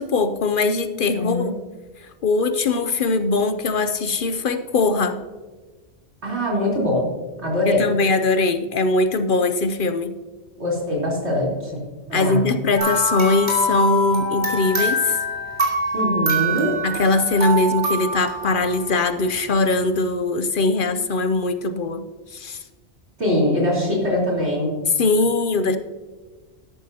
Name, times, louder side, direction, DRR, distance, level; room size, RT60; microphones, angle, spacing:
voice 1, 0.0-1.5 2.0-5.2 7.7-10.2 12.1-15.2 16.8-22.1 22.3-22.6 25.0-25.8, left 3 dB, 55° left, 10 dB, 0.7 m, -21 dB
voice 2, 1.1-1.6 6.2-7.1 7.4-7.8 10.6-11.8 12.1-12.6 15.9-16.7 23.2-24.7, left 1 dB, 70° right, -4 dB, 4.1 m, -22 dB
sound 1, 12.8-19.2, right 1 dB, 40° right, 3.1 m, -24 dB
13.0 x 11.5 x 2.8 m, 1.3 s
omnidirectional pair, 1.2 m